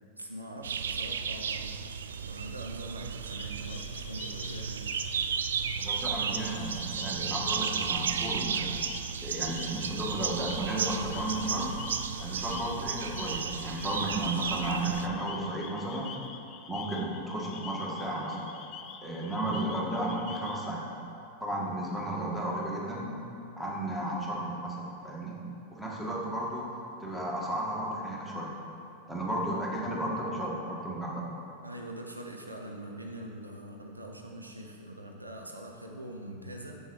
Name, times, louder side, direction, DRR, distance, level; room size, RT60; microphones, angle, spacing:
voice 1, 0.2-1.7 2.2-4.9 31.6-36.8, right 1 dB, 85° right, 2 dB, 0.7 m, -43 dB
sound 1, 0.6-15.1, right 7 dB, 65° right, 0.3 m, -34 dB
sound 2, 3.3-20.7, left 8 dB, 35° left, 0.5 m, -46 dB
voice 2, 5.8-8.8 9.2-11.8 12.2-16.1 16.7-18.5 19.0-20.8 21.4-23.1 23.6-25.3 25.7-26.7 27.0-28.5 29.1-31.2, right 1 dB, ahead, -5 dB, 1.7 m, -33 dB
7.2 x 6.5 x 4.8 m, 2.9 s
figure-of-eight pair, 90°, 0 cm